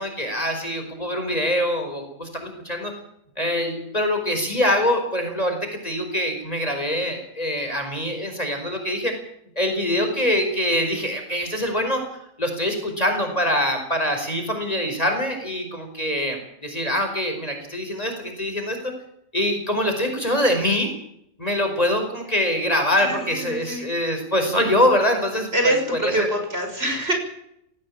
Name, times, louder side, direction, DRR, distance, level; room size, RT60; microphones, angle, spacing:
voice 1, 0.0-2.9 3.4-5.6 5.8-9.1 9.5-12.0 12.4-18.9 19.3-20.9 21.4-25.8 26.0-26.3, left 1 dB, 25° left, 5 dB, 5.1 m, -24 dB
voice 2, 23.0-23.9 25.5-27.1, right 1 dB, 40° right, 4 dB, 6.4 m, -25 dB
18.5 x 17.5 x 8.7 m, 0.74 s
omnidirectional pair, 1.5 m